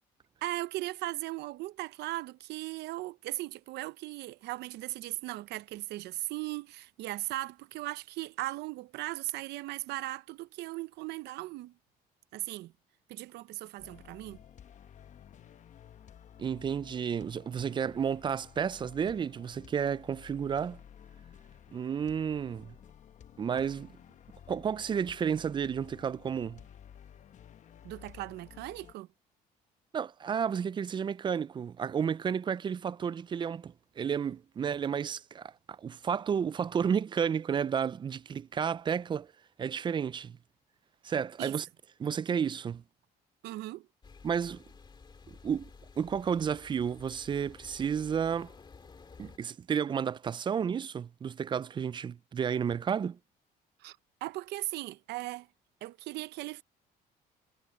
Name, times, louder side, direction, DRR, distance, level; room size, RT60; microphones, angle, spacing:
voice 1, 0.4-11.7 12.3-12.7 13.1-14.4 27.8-29.1 41.4-41.6 43.4-43.9 53.8-55.5 55.8-56.6, right 18 dB, 80° right, 0.7 m, -38 dB
sound 1, 13.8-28.9, left 9 dB, 45° left, 1.0 m, -54 dB
voice 2, 16.4-20.8 21.7-22.8 23.4-23.9 24.5-26.6 29.9-39.3 39.6-40.4 41.0-41.7 42.0-42.8 44.2-44.6 45.3-45.7 46.0-48.5 49.2-53.2, right 7 dB, 30° right, 0.4 m, -32 dB
sound 2, 44.0-49.4, left 4 dB, 25° left, 2.0 m, -53 dB
cardioid pair, 110°, 17 cm